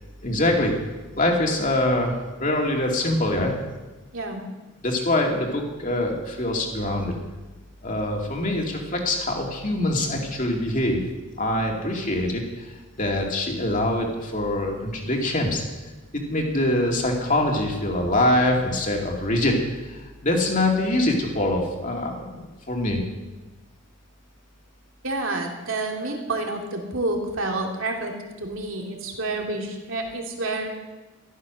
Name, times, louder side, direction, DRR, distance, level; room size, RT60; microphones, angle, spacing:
voice 1, 0.2-0.7 1.2-3.5 4.8-7.1 7.8-11.0 11.4-12.7 13.0-15.6 16.3-23.0, left 1 dB, 35° left, 1 dB, 2.6 m, -24 dB
voice 2, 4.1-4.4 25.0-28.1 28.4-30.7, right 2 dB, 65° right, 1 dB, 2.6 m, -29 dB
14.0 x 13.0 x 6.4 m, 1.2 s
head